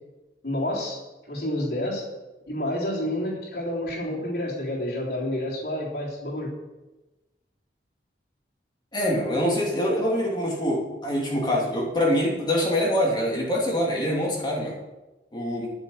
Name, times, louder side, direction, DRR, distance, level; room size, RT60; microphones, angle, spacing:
voice 1, 0.4-1.0 1.3-2.0 2.5-6.5, left 1 dB, 65° left, -4 dB, 3.7 m, -29 dB
voice 2, 8.9-14.8 15.3-15.7, equal, 25° left, -2 dB, 3.0 m, -24 dB
12.5 x 7.0 x 7.4 m, 1.1 s
head